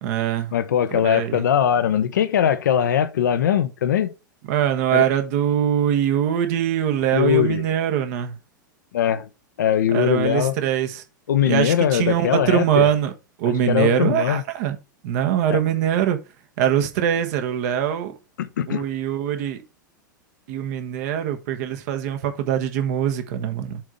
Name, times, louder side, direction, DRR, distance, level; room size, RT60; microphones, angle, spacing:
voice 1, 0.0-0.6 0.9-1.4 4.5-8.4 9.9-11.0 11.4-13.1 13.4-14.8 15.0-16.2 16.6-18.1 18.7-19.6 20.5-23.8, right 10 dB, 55° right, 1.3 m, -22 dB
voice 2, 0.5-4.1 4.9-5.1 7.1-7.6 8.9-9.3 9.6-10.5 11.3-12.9 13.7-14.4 15.5-15.6 18.4-18.8, left 9 dB, 65° left, 0.8 m, -21 dB
7.5 x 3.7 x 5.2 m
figure-of-eight pair, 90°, 11 cm